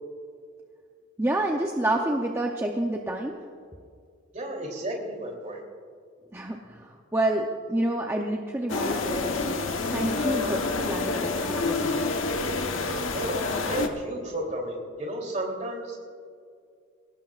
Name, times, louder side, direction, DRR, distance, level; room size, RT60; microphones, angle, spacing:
voice 1, 1.2-3.4 6.3-10.6 10.9-12.0, right 1 dB, 10° right, 1 dB, 0.7 m, -28 dB
voice 2, 4.3-5.6 13.1-16.1, right 1 dB, 35° right, 0 dB, 3.2 m, -33 dB
sound 1, 8.7-13.9, left 3 dB, 75° left, 1.2 m, -28 dB
22.0 x 18.0 x 2.5 m, 2.2 s
head